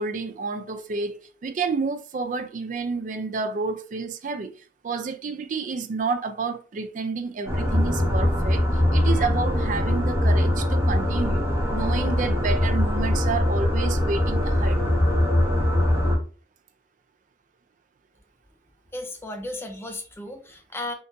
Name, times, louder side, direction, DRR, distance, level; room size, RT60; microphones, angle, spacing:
voice 1, 0.0-4.6 4.8-11.4 11.7-14.8, right 4 dB, 45° right, 0.4 m, -30 dB
sound 1, 7.5-16.2, left 1 dB, 15° right, 0.8 m, -22 dB
voice 2, 18.9-20.9, left 1 dB, 15° left, 0.5 m, -34 dB
3.7 x 2.5 x 2.5 m
head